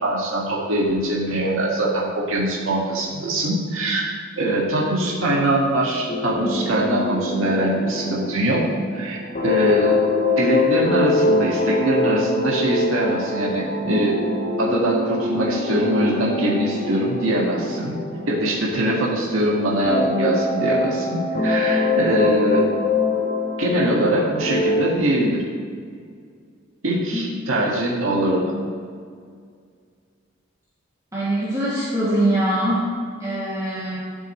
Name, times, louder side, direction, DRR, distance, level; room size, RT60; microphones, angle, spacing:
voice 1, 0.0-4.1 4.4-8.6 8.9-10.0 10.4-14.2 14.6-18.0 18.3-22.6 23.6-25.5 26.8-28.5, right 1 dB, 90° right, -4 dB, 1.8 m, -22 dB
sound 1, 6.1-19.4 19.8-25.0, left 2 dB, 40° left, 0.8 m, -24 dB
voice 2, 31.1-32.9 33.2-34.0, right 1 dB, 15° right, -11 dB, 2.3 m, -22 dB
12.5 x 7.2 x 3.2 m, 2.1 s
head